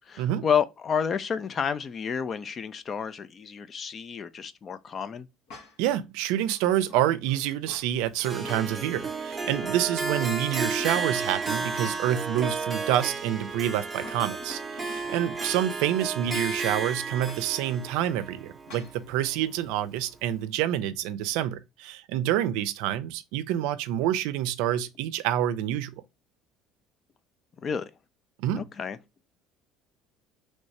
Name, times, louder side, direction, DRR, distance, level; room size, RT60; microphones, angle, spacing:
voice 1, 0.1-5.3 27.6-27.9 28.5-29.0, left 7 dB, 30° left, 0.4 m, -30 dB
sound 1, 5.5-5.9 6.4-7.9 8.3-9.0 9.4-10.1 10.5-12.3 12.7-12.8 13.8-15.8 17.2-17.5 18.7-19.0, left 3 dB, 75° left, 1.0 m, -48 dB
voice 2, 5.8-25.9 28.4-28.7, right 11 dB, 85° right, 0.4 m, -27 dB
Harp, 8.2-19.5, right 4 dB, 15° right, 0.6 m, -33 dB
3.1 x 2.7 x 3.1 m
cardioid pair, 140°, 0 cm